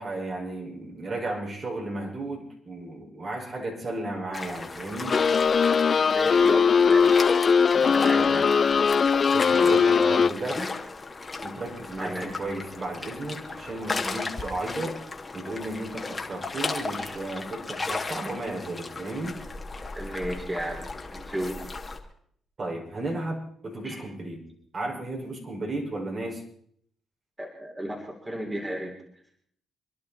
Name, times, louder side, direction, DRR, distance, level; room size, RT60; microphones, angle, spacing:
voice 1, 0.0-5.2 8.2-8.4 9.3-10.7 11.4-15.0 15.3-19.4 22.6-24.4 24.7-26.4, right 2 dB, 50° right, -2 dB, 5.6 m, -34 dB
sound 1, 4.3-22.0, left 3 dB, 30° left, 2.6 m, -35 dB
sound 2, 5.1-10.3, left 6 dB, 50° left, 0.7 m, -20 dB
voice 2, 6.0-7.2 7.7-8.5 12.0-12.3 19.9-21.6 23.8-24.0 27.4-29.0, right 1 dB, 20° right, 1 dB, 3.6 m, -34 dB
27.0 x 11.0 x 4.3 m, 0.66 s
hypercardioid pair, 50°, 0 cm